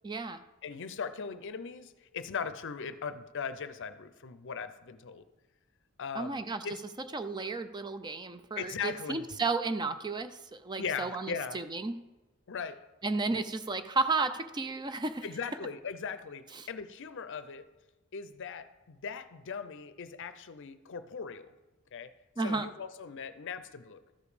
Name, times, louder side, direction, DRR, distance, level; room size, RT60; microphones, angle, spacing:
voice 1, 0.0-0.4 6.2-6.7 7.1-12.0 13.0-15.3 16.5-16.7 22.4-22.7, right 3 dB, 20° right, 10 dB, 0.4 m, -33 dB
voice 2, 0.6-5.3 6.0-6.8 8.6-9.2 10.8-11.6 12.5-12.8 13.3-13.4 15.2-17.7 18.1-21.5 21.9-22.1 22.4-24.0, left 6 dB, 60° left, 12 dB, 0.6 m, -39 dB
13.0 x 5.1 x 5.0 m, 1.1 s
head